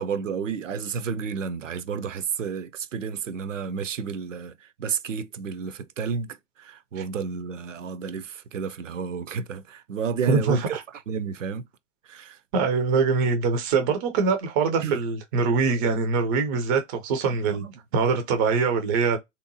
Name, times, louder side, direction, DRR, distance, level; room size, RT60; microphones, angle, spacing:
voice 1, 0.0-11.6 12.0-12.4 14.8-15.0 17.3-17.7, right 6 dB, 75° right, 0.6 m, -31 dB
voice 2, 10.3-10.8 12.5-17.6 17.9-19.2, right 4 dB, 20° right, 0.4 m, -23 dB
3.4 x 2.8 x 2.6 m
figure-of-eight pair, 110°, 38 cm